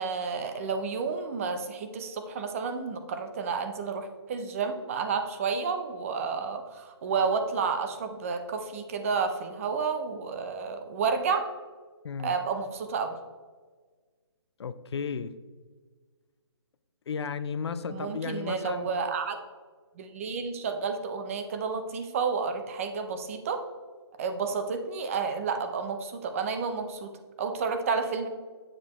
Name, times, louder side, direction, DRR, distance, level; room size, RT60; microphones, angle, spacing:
voice 1, 0.0-11.4 12.2-13.2 17.9-19.4 20.0-23.6 24.2-27.1 27.4-28.3, right 5 dB, 30° right, 7 dB, 0.6 m, -31 dB
voice 2, 12.0-12.4 14.6-15.3 17.1-18.9, left 6 dB, 70° left, 13 dB, 0.5 m, -34 dB
7.5 x 6.5 x 3.0 m, 1.5 s
hypercardioid pair, 160°, 14 cm